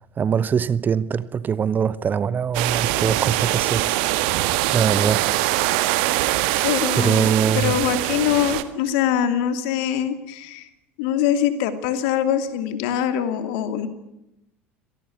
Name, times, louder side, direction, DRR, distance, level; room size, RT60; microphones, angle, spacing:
voice 1, 0.0-3.9 4.7-5.4 7.0-7.8, right 7 dB, 25° right, 0.9 m, -22 dB
sound 1, 2.5-8.6, right 16 dB, 55° right, 1.6 m, -23 dB
voice 2, 6.6-10.7 11.0-13.9, left 10 dB, 55° left, 2.7 m, -23 dB
26.5 x 18.5 x 8.6 m
figure-of-eight pair, 70°, 7 cm